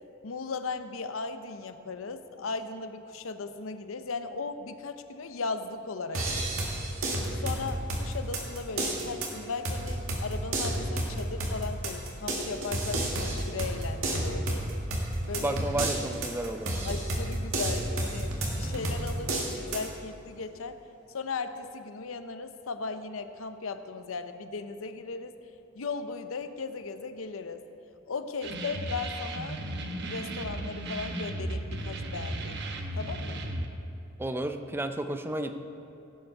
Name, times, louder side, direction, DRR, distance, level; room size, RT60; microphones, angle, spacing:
voice 1, 0.2-6.7 7.4-14.6 15.3-15.6 16.8-20.8 21.1-25.3 25.7-27.6 28.1-29.6 30.0-32.7 33.0-33.4, left 4 dB, 90° left, 10 dB, 0.7 m, -37 dB
sound 1, 6.1-19.9, right 1 dB, 85° right, 2.0 m, -31 dB
voice 2, 15.4-16.7 34.2-35.6, right 1 dB, 10° right, 7 dB, 0.5 m, -32 dB
sound 2, 28.4-33.7, right 1 dB, 60° right, 1.0 m, -35 dB
16.5 x 7.9 x 4.7 m, 2.9 s
head